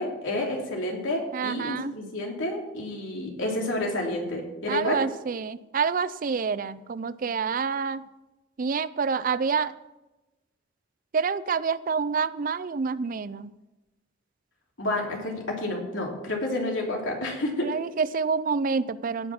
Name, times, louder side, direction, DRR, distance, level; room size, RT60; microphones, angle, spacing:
voice 1, 0.0-5.0 14.8-17.7, left 1 dB, 90° left, 0 dB, 3.2 m, -30 dB
voice 2, 1.3-1.9 4.7-8.0 8.6-9.7 11.1-13.5 17.6-19.3, right 5 dB, 45° right, 16 dB, 0.4 m, -27 dB
17.5 x 6.3 x 5.9 m, 1.0 s
head